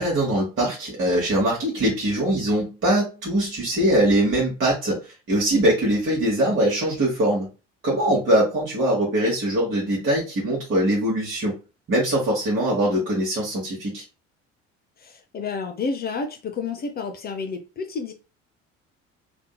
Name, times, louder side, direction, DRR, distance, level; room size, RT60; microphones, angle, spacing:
voice 1, 0.0-7.5 7.8-11.5 11.9-14.0, right 1 dB, 30° right, -4 dB, 1.1 m, -22 dB
voice 2, 15.0-18.1, left 4 dB, 25° left, 6 dB, 0.4 m, -30 dB
2.7 x 2.6 x 2.2 m, 0.32 s
figure-of-eight pair, 55°, 38 cm